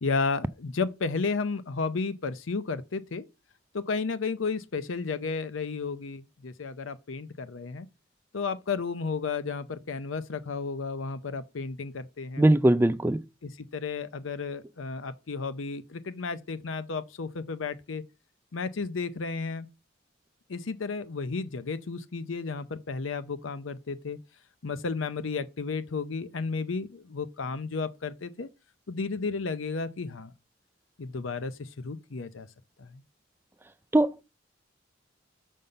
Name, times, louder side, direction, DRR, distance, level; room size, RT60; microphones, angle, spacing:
voice 1, 0.0-3.2 3.7-7.9 8.3-12.4 13.4-18.0 18.5-19.7 20.5-24.2 24.6-28.5 28.9-30.3 31.0-32.5 32.8-33.0, left 4 dB, 85° left, 0.6 m, -33 dB
voice 2, 12.4-13.2 33.9-34.2, right 1 dB, 10° right, 0.4 m, -21 dB
5.5 x 5.5 x 6.6 m
head